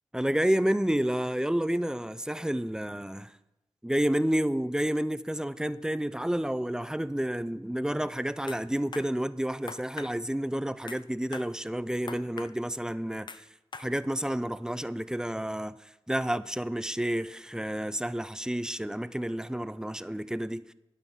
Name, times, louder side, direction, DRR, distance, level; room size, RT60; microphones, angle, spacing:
voice 1, 0.1-3.3 3.8-13.5 13.8-20.7, right 1 dB, 5° right, 0.4 m, -30 dB
sound 1, 8.5-8.6 8.9-9.1 9.7-10.1 10.9-11.0 11.3-11.5 12.1-12.5 13.3-13.4 13.7-13.9, left 4 dB, 50° left, 0.6 m, -41 dB
10.5 x 9.3 x 5.7 m
wide cardioid pair, 90°, 10 cm